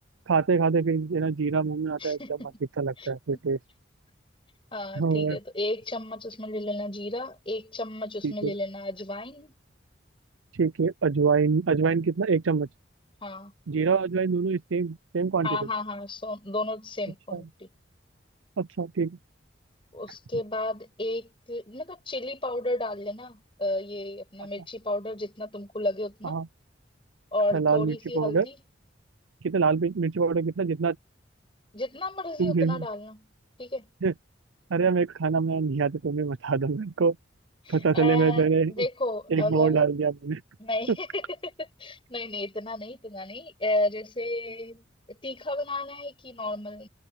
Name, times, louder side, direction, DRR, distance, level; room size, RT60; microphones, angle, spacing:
voice 1, 0.3-2.2 2.8-3.6 5.0-5.4 8.2-8.5 10.6-12.7 13.7-15.5 17.3-17.4 18.6-19.2 26.2-26.5 27.5-28.5 29.4-31.0 32.4-32.9 34.0-34.1 34.7-37.2 37.7-38.9 39.3-40.4 40.9-41.0, right 5 dB, 90° right, 0.6 m, -25 dB
voice 2, 2.0-2.5 3.0-3.1 4.7-9.6 13.2-13.5 15.4-17.7 19.9-26.4 27.3-28.6 31.7-33.2 33.6-33.9 37.6-39.8 40.6-46.9, left 1 dB, 25° left, 7.0 m, -33 dB
head